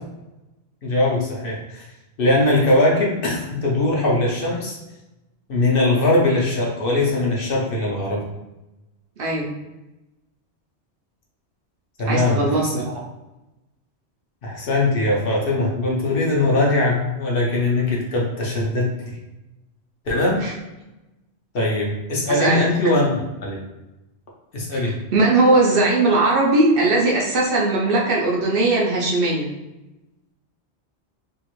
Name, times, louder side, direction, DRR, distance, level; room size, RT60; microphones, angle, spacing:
voice 1, 0.8-1.8 2.2-4.8 5.5-8.2 12.0-12.8 14.4-19.2 20.1-20.4 21.5-23.1 23.4-23.6 24.5-25.0, left 2 dB, 60° left, -3 dB, 0.8 m, -21 dB
voice 2, 9.2-9.5 12.1-13.0 20.4-20.5 22.3-22.7 24.7-29.5, right 2 dB, 60° right, -3 dB, 0.7 m, -19 dB
2.7 x 2.4 x 2.9 m, 1.0 s
omnidirectional pair, 1.2 m